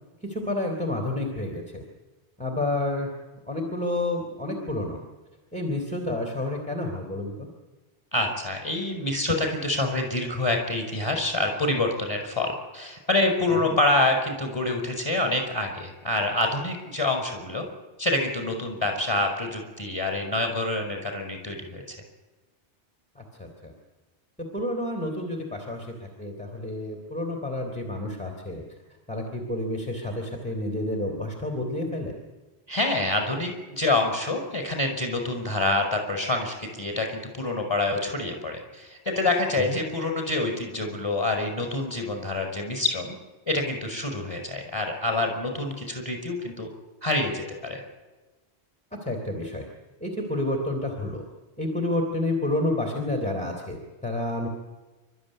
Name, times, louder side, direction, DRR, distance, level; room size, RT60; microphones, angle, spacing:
voice 1, 0.2-1.8 2.4-3.1 3.5-5.0 5.5-7.5 13.6-13.7 23.2-23.7 24.4-28.6 29.1-32.1 39.7-39.8 49.0-49.6 50.0-51.2 51.6-54.5, left 1 dB, 5° left, 1 dB, 3.2 m, -29 dB
voice 2, 8.1-17.6 18.0-22.0 32.7-43.1 43.5-46.7 47.0-47.8, left 2 dB, 25° left, 4 dB, 5.6 m, -27 dB
28.5 x 13.0 x 10.0 m, 1.2 s
omnidirectional pair, 1.1 m